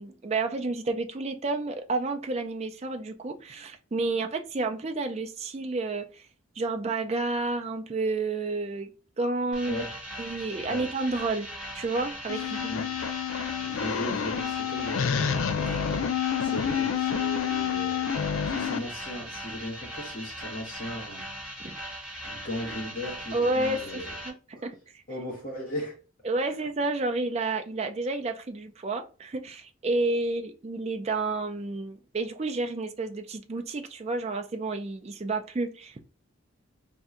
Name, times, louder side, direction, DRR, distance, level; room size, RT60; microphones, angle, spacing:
voice 1, 0.0-6.3 6.6-9.8 10.2-11.5 11.7-12.7 21.6-21.7 23.3-25.0 26.2-36.0, right 3 dB, 30° right, 0.4 m, -30 dB
sound 1, 9.5-24.3, equal, 5° right, 1.0 m, -39 dB
voice 2, 9.6-10.0 10.6-10.9 12.6-13.0 13.6-16.1 16.4-18.1 18.5-21.3 22.2-24.1 25.1-26.0, equal, 40° left, 1.0 m, -37 dB
sound 2, 12.3-18.8, left 8 dB, 75° left, 0.4 m, -28 dB
2.7 x 2.2 x 3.6 m
head